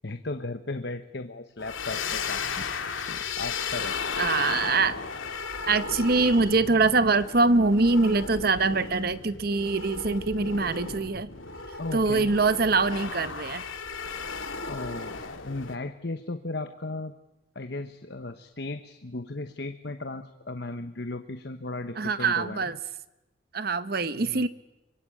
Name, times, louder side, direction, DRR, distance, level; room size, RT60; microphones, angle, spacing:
voice 1, 0.0-2.7 3.1-4.0 11.8-12.3 14.4-17.1 17.5-22.7 24.1-24.5, left 2 dB, 55° left, 9 dB, 1.1 m, -36 dB
sound 1, 1.6-15.8, left 5 dB, 90° left, 2.5 m, -35 dB
voice 2, 4.2-5.0 5.7-11.3 11.9-13.7 22.0-22.8 23.5-24.5, right 3 dB, 50° right, 14 dB, 0.9 m, -24 dB
25.5 x 24.5 x 8.7 m, 0.99 s
head